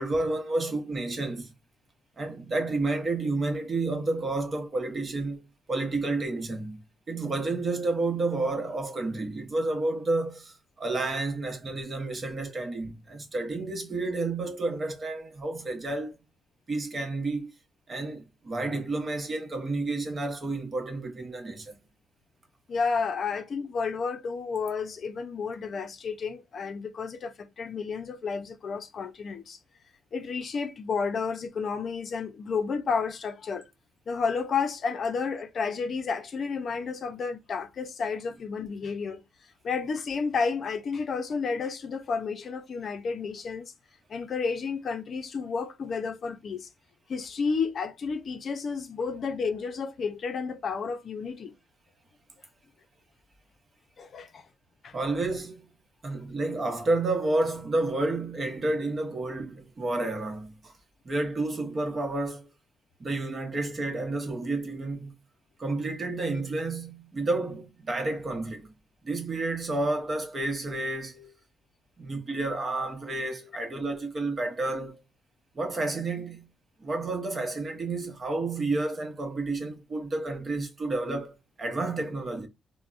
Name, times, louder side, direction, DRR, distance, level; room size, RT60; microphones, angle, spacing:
voice 1, 0.0-1.5 2.2-5.4 5.7-16.2 16.7-17.5 17.9-21.8 54.9-55.7 56.0-60.7 61.0-62.5 63.0-65.1 65.6-68.7 69.0-71.3 72.0-75.0 75.5-76.5 76.8-82.5, right 2 dB, 35° right, 0.9 m, -30 dB
voice 2, 22.7-29.6 30.1-33.7 34.1-39.2 39.6-43.7 44.1-46.7 47.1-51.5 54.0-54.5 54.8-55.0, left 5 dB, 50° left, 0.5 m, -31 dB
3.3 x 2.1 x 2.5 m
cardioid pair, 90°, 0 cm